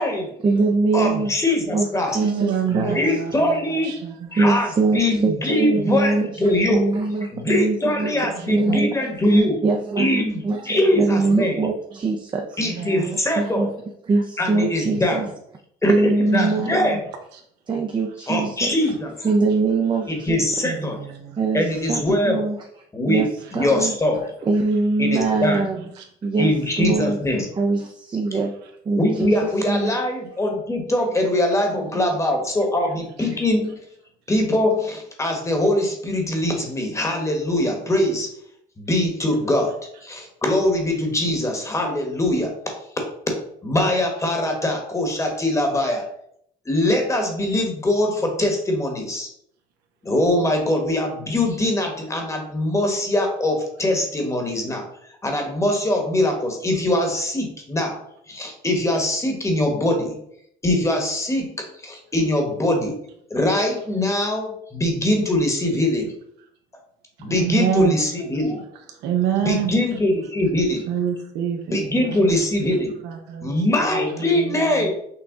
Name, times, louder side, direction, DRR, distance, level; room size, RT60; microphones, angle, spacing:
voice 1, 0.4-1.3 1.7-3.0 4.3-6.4 6.7-8.1 8.5-9.1 9.6-12.9 13.4-13.7 14.0-15.3 15.9-17.0 17.7-18.7 19.2-20.4 21.4-22.6 23.1-23.3 23.5-23.9 24.4-25.9 26.2-27.2 27.6-28.5 28.9-29.3 29.7-30.0 31.7-32.1, right 3 dB, 25° right, 2 dB, 0.5 m, -22 dB
voice 2, 0.9-2.2 2.7-4.0 4.3-6.8 7.3-9.6 10.0-11.6 12.6-13.7 14.4-15.2 15.8-17.0 18.3-19.1 20.1-21.0 21.5-22.4 22.9-23.2 23.5-24.2 25.0-25.7 26.4-27.5 28.9-33.7 34.3-38.3 38.8-39.7 40.0-46.0 46.7-49.3 50.0-54.9 55.2-60.1 60.6-63.0 63.3-66.1 67.2-68.6 69.4-70.9 71.7-72.9 73.4-74.9, left 1 dB, 15° left, 3 dB, 1.1 m, -22 dB
voice 3, 2.2-4.3 8.1-8.8 12.6-13.2 16.3-16.8 20.6-21.5 25.3-25.4 25.7-26.0 33.2-33.3 67.3-68.0 68.9-69.7 70.9-74.9, right 8 dB, 90° right, 4 dB, 0.9 m, -28 dB
6.0 x 2.3 x 3.6 m, 0.69 s
cardioid pair, 110°, 17 cm